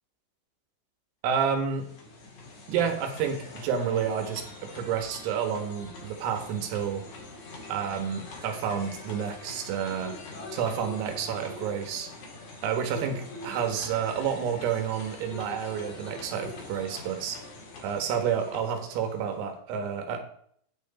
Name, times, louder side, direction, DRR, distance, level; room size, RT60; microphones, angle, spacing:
voice 1, 1.2-1.9 2.7-7.0 7.7-10.2 10.5-12.1 12.6-17.4 17.8-20.2, right 7 dB, 85° right, 5 dB, 4.2 m, -30 dB
sound 1, 1.5-19.5, left 3 dB, 50° left, 2.9 m, -44 dB
10.0 x 9.2 x 4.2 m, 0.63 s
omnidirectional pair, 5.9 m